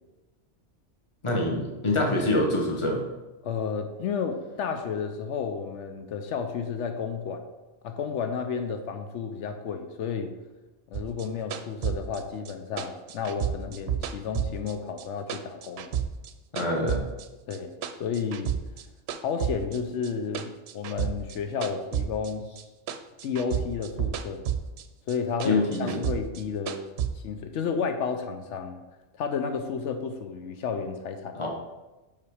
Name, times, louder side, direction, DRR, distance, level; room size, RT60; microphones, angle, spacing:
voice 1, 1.2-3.0 16.5-17.0 25.4-26.0 31.3-31.5, left 2 dB, 25° left, 0 dB, 1.1 m, -25 dB
voice 2, 3.4-7.4 7.8-10.3 10.9-15.9 17.5-17.7 18.0-18.5 19.2-22.5 23.2-24.4 25.1-26.8 27.2-28.8 29.2-31.5, left 6 dB, 80° left, 6 dB, 0.9 m, -32 dB
sound 1, 10.9-15.0 15.3-17.3 17.5-18.8 19.1-22.6 22.9-24.8 25.1-27.1, right 9 dB, 70° right, 0.8 m, -31 dB
5.6 x 5.1 x 4.8 m, 1.1 s
omnidirectional pair, 1.2 m